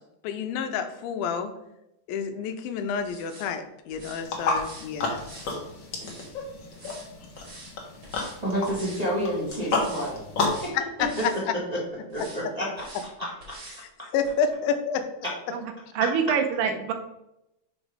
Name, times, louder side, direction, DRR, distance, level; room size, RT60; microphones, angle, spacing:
voice 1, 0.2-1.5 2.1-5.2 10.7-11.5 14.1-15.0, left 6 dB, 85° left, 8 dB, 2.5 m, -29 dB
sound 1, 3.0-3.5 3.9-4.2 4.5-4.9 5.2-6.3 6.7-7.1 7.3-7.7 8.0-8.4 8.7-9.1 9.5-10.1 10.4-10.7 11.0-11.4 12.1-12.4 12.8-13.1 13.4-13.8 14.2-14.3, right 1 dB, 40° right, 2.8 m, -45 dB
sound 2, 4.2-10.7, left 3 dB, 55° left, 1.3 m, -31 dB
voice 2, 8.4-10.2 10.6-10.7 11.7-11.8 12.1-12.9 13.2-13.8, equal, 15° right, -6 dB, 1.3 m, -30 dB
voice 3, 15.5-16.9, right 6 dB, 75° right, 6 dB, 2.3 m, -26 dB
5.8 x 5.3 x 4.7 m, 0.85 s
omnidirectional pair, 4.1 m